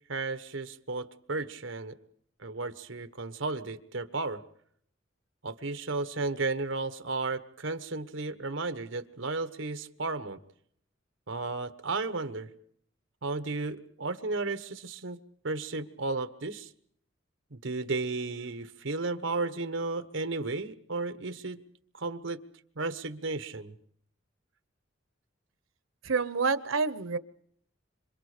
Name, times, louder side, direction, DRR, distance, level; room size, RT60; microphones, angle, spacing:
voice 1, 0.1-1.9 2.4-4.4 5.4-10.4 11.3-12.5 13.2-16.7 17.5-21.6 21.9-22.4 22.8-23.7, right 3 dB, 70° right, 11 dB, 1.2 m, -34 dB
voice 2, 26.0-27.2, right 4 dB, 85° right, 15 dB, 0.9 m, -28 dB
26.5 x 25.0 x 5.1 m, 0.67 s
head